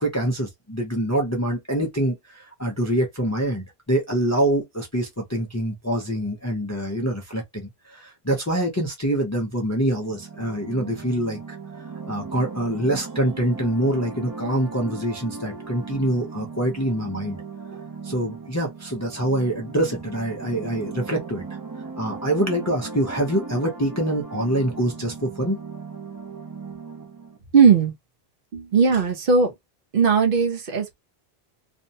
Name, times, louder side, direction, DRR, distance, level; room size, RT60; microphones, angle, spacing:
voice 1, 0.0-11.6 12.1-17.4 18.0-21.4 22.0-25.6, right 1 dB, 20° left, 0.5 m, -25 dB
sound 1, 10.0-27.4, right 4 dB, 35° right, 0.3 m, -38 dB
voice 2, 27.5-27.9 28.5-29.5 29.9-30.9, right 5 dB, 65° right, 0.9 m, -18 dB
2.6 x 2.1 x 2.7 m
omnidirectional pair, 1.0 m